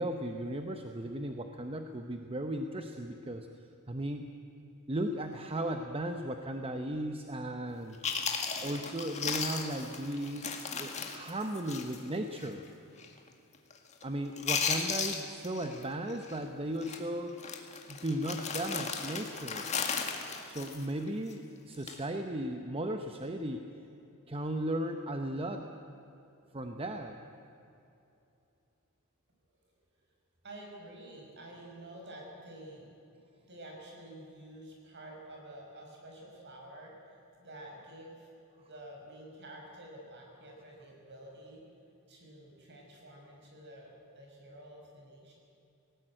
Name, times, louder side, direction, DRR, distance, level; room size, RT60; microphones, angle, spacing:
voice 1, 0.0-3.5 3.9-4.3 4.9-8.0 8.6-12.6 14.0-17.3 17.9-19.7 20.4-23.6 24.3-25.7 26.5-27.2, right 1 dB, 25° right, 5 dB, 0.9 m, -36 dB
Chewing mastication, 7.7-7.8 8.0-12.1 12.3-12.5 13.0-13.3 13.5-14.0 14.3-15.8 16.1-16.4 16.8-17.0 17.4-21.3 21.7-22.0, left 6 dB, 30° left, 2.0 m, -36 dB
voice 2, 30.4-32.9 33.4-38.3 38.7-41.6 42.1-45.3, right 1 dB, 50° right, 0 dB, 6.2 m, -49 dB
18.5 x 18.5 x 9.0 m, 2.8 s
head